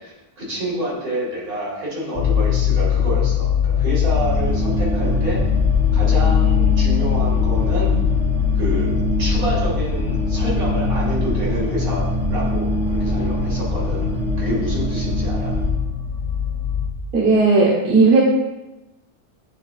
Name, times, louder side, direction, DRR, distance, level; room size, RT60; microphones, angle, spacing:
voice 1, 0.0-5.4 5.9-7.9 8.5-14.1 14.4-15.5, equal, 70° right, -6 dB, 2.5 m, -28 dB
sound 1, 2.1-16.9, left 8 dB, 75° left, 0.5 m, -22 dB
sound 2, 4.1-15.7, right 1 dB, 50° left, 1.1 m, -24 dB
voice 2, 17.1-18.2, right 3 dB, 40° right, -6 dB, 1.5 m, -15 dB
10.0 x 3.8 x 2.4 m, 1.0 s
omnidirectional pair, 1.6 m